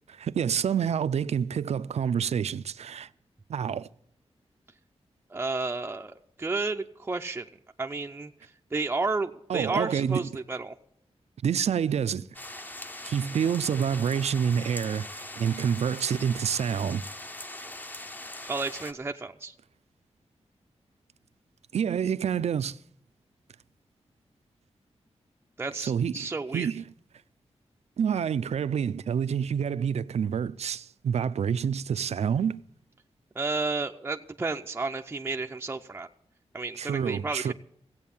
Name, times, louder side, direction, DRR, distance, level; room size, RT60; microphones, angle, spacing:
voice 1, 0.2-3.1 3.5-3.9 9.5-10.3 11.4-12.3 13.0-17.0 21.7-22.8 25.8-26.8 28.0-32.6 36.8-37.5, right 7 dB, 75° right, 0.5 m, -28 dB
voice 2, 5.3-7.5 7.8-10.7 18.5-19.5 25.6-26.7 33.3-36.1 36.5-37.5, right 3 dB, 20° right, 0.5 m, -32 dB
sound 1, 12.3-18.9, left 1 dB, 15° left, 0.7 m, -41 dB
16.0 x 8.4 x 7.1 m
wide cardioid pair, 170°, 11 cm